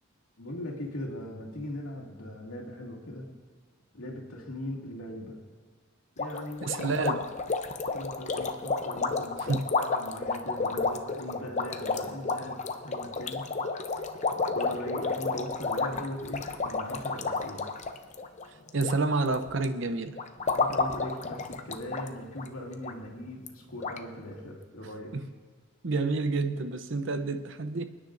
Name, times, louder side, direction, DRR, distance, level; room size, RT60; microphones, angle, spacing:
voice 1, 0.4-3.3 3.9-5.4 6.2-7.0 7.9-13.5 14.3-17.6 20.5-25.1, left 1 dB, 90° left, -2 dB, 2.3 m, -40 dB
sound 1, 6.2-18.9 19.2-19.6 20.2-22.1 22.4-22.5 22.8-22.9 23.5-23.6 23.8-24.0, left 4 dB, 35° left, 0.6 m, -31 dB
voice 2, 6.6-7.2 9.5-9.6 18.7-20.1 25.1-25.2 25.8-27.8, right 3 dB, 60° right, 10 dB, 0.7 m, -29 dB
28.0 x 9.9 x 2.6 m, 1.4 s
head